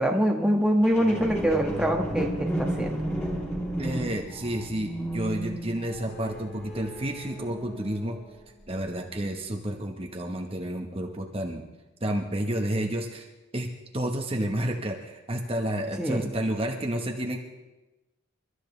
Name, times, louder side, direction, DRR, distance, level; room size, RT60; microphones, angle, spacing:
voice 1, 0.0-3.0 16.0-16.3, equal, 5° right, 1 dB, 1.4 m, -24 dB
sound 1, 0.8-8.3 8.8-8.9, right 1 dB, 10° left, 3.0 m, -33 dB
voice 2, 3.8-8.2 8.7-11.6 12.0-13.3 13.5-13.7 13.9-17.4, right 1 dB, 25° right, 1 dB, 1.2 m, -30 dB
28.5 x 13.0 x 3.3 m, 1.1 s
head